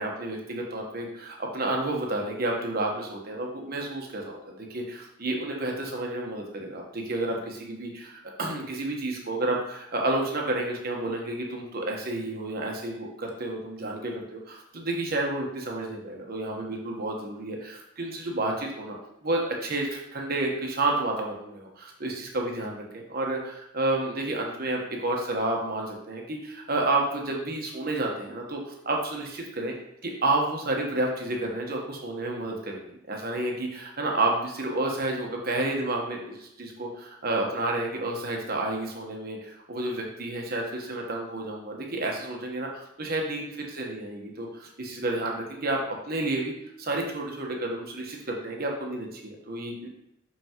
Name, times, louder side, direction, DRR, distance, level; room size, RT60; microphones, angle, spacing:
voice 1, 0.0-19.0 19.2-29.7 30.0-43.5 43.8-45.8 46.1-46.5 46.8-49.9, right 2 dB, 50° right, 0 dB, 1.2 m, -30 dB
6.1 x 5.6 x 3.0 m, 0.79 s
head